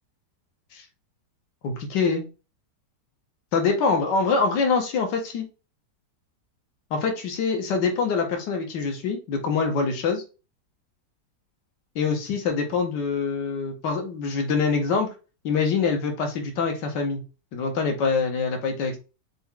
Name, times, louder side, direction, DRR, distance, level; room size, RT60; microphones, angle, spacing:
voice 1, 1.6-2.2 3.5-5.5 6.9-10.2 12.0-15.1 15.4-17.2 17.5-19.0, left 4 dB, 90° left, 4 dB, 1.6 m, -24 dB
6.0 x 2.3 x 3.6 m, 0.31 s
omnidirectional pair, 1.9 m